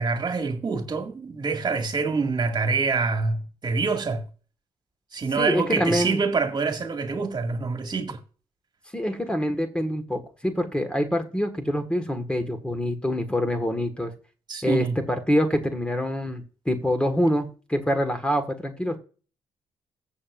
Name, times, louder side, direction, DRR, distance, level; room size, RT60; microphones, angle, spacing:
voice 1, 0.0-4.2 5.1-8.2 14.5-15.0, right 4 dB, 40° right, 2.1 m, -26 dB
voice 2, 5.4-6.2 8.9-14.1 14.6-19.0, equal, 10° left, 1.6 m, -25 dB
14.0 x 7.6 x 2.6 m
cardioid pair, 80°, 11 cm